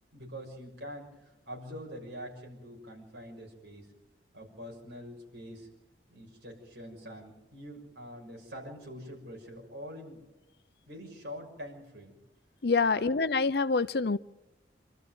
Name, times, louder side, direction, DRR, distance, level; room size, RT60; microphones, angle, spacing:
voice 1, 0.1-3.9 4.3-5.7 6.1-10.2 10.9-12.1 12.9-13.2, equal, 80° right, 1 dB, 6.6 m, -45 dB
voice 2, 12.6-14.2, left 4 dB, 60° left, 14 dB, 0.7 m, -26 dB
26.0 x 13.5 x 9.4 m, 0.96 s
head